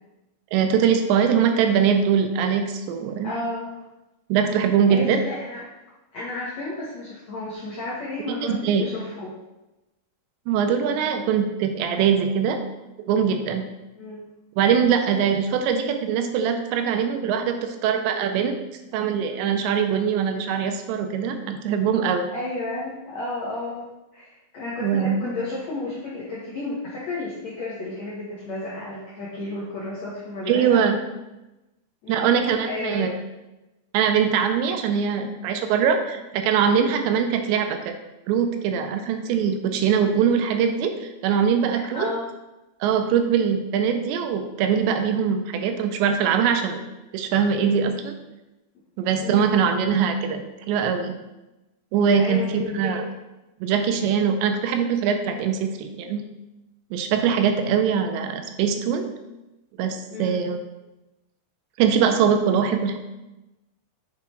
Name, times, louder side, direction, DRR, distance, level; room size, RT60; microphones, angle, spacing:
voice 1, 0.5-3.3 4.3-5.2 8.4-8.9 10.5-12.6 13.0-13.6 14.6-18.5 18.9-22.3 24.8-25.2 30.5-30.9 32.1-33.1 33.9-38.0 38.3-42.1 42.8-46.8 47.1-48.2 49.0-50.4 50.7-51.1 51.9-53.0 53.6-56.2 56.9-59.1 59.8-60.6 61.8-63.0, right 7 dB, 80° right, 6 dB, 2.8 m, -22 dB
voice 2, 3.2-3.8 4.9-5.6 6.1-9.4 13.9-14.3 22.3-30.8 32.0-33.1 41.7-42.3 49.2-49.8 52.2-53.1 60.1-60.4, left 2 dB, 90° left, -7 dB, 1.5 m, -32 dB
8.2 x 5.8 x 3.1 m, 1.0 s
omnidirectional pair, 5.2 m